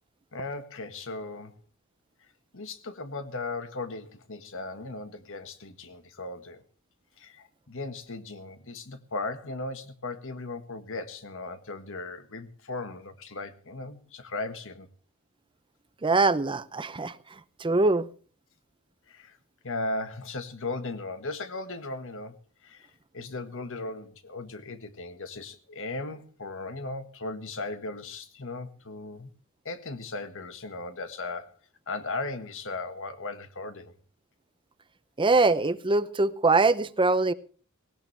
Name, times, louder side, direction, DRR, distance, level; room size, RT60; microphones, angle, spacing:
voice 1, 0.3-1.6 2.5-6.6 7.2-14.9 19.1-19.4 19.6-22.4 22.6-29.3 29.6-31.6 31.9-33.9, left 3 dB, 65° left, 1.7 m, -37 dB
voice 2, 16.0-17.2 17.6-18.1 35.2-37.3, right 3 dB, 25° right, 0.7 m, -23 dB
18.0 x 17.5 x 3.3 m
head